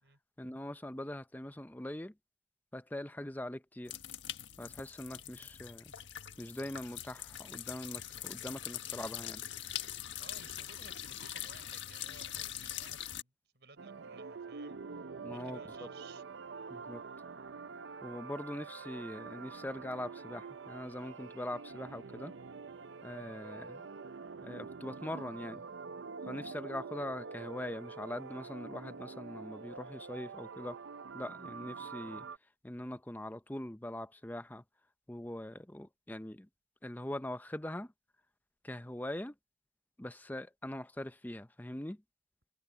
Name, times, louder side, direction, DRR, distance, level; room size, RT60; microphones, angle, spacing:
voice 1, 0.4-2.1 2.7-4.0 4.6-5.9 6.4-9.4 15.2-15.6 16.7-17.0 18.0-22.3 23.0-23.8 24.4-25.6 26.2-30.8 31.1-32.3 32.6-34.6 35.1-36.5 36.8-37.9 38.6-39.3 40.0-42.0, left 1 dB, 10° left, 0.6 m, -42 dB
sound 1, 3.9-13.2, left 11 dB, 85° left, 1.5 m, -43 dB
voice 2, 10.2-14.8 15.3-16.2, right 4 dB, 65° right, 5.1 m, -58 dB
sound 2, 13.8-32.4, right 5 dB, 80° right, 0.6 m, -46 dB
head